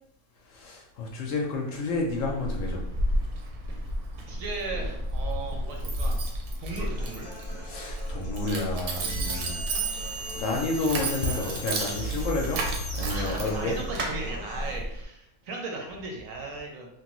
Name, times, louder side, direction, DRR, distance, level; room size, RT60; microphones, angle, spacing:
voice 1, 0.4-2.8 7.6-13.8, left 2 dB, 70° left, 0 dB, 0.8 m, -31 dB
Keys jangling, 1.9-15.0, right 1 dB, 85° right, 1.1 m, -32 dB
voice 2, 4.3-6.3 6.6-7.3 13.1-16.9, right 3 dB, 70° right, 1 dB, 0.9 m, -37 dB
Human voice / Acoustic guitar, 6.7-14.7, equal, 40° left, 0.3 m, -45 dB
sound 1, 9.1-14.0, right 2 dB, 5° left, 0.7 m, -37 dB
3.1 x 2.2 x 2.9 m, 0.79 s
omnidirectional pair, 1.6 m